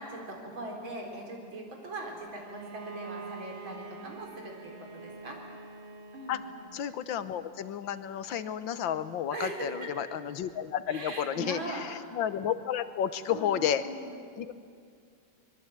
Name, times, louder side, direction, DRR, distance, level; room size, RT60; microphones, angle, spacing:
voice 1, 0.0-4.5 4.8-5.4 6.1-6.4 9.3-9.7 10.9-11.8 13.3-14.2, right 2 dB, 80° right, 1 dB, 4.9 m, -40 dB
Bowed string instrument, 2.4-7.1, right 3 dB, 40° right, 1.3 m, -45 dB
voice 2, 6.7-13.8 14.4-14.5, left 9 dB, 75° left, 12 dB, 1.7 m, -32 dB
24.5 x 21.5 x 8.9 m, 2.2 s
omnidirectional pair, 2.1 m